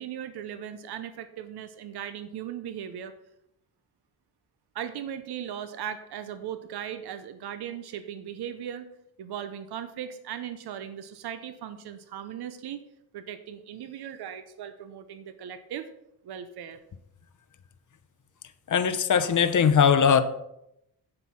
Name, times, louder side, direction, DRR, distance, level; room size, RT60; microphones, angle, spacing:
voice 1, 0.0-3.1 4.7-8.9 9.2-12.9 13.1-15.9 16.2-16.8, right 9 dB, 90° right, 11 dB, 0.9 m, -38 dB
voice 2, 18.7-20.2, left 7 dB, 50° left, 11 dB, 1.0 m, -20 dB
9.1 x 7.8 x 5.8 m, 0.81 s
cardioid pair, 85°, 38 cm